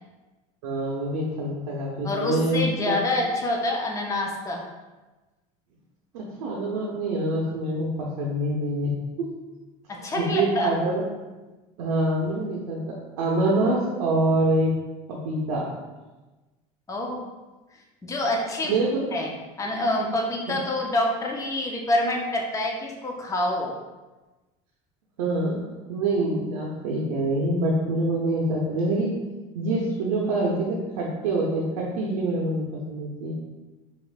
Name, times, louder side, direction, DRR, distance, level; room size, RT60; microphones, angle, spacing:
voice 1, 0.6-3.0 6.1-9.3 10.1-11.0 11.8-14.7 15.1-15.7 18.6-19.0 25.2-25.6 25.9-29.1 29.5-33.3, right 2 dB, 90° right, -3 dB, 0.6 m, -25 dB
voice 2, 2.0-4.6 9.9-10.7 16.9-17.2 18.0-23.8, left 1 dB, 15° left, 0 dB, 0.6 m, -27 dB
4.2 x 2.4 x 2.5 m, 1.2 s
supercardioid pair, 105°, 18 cm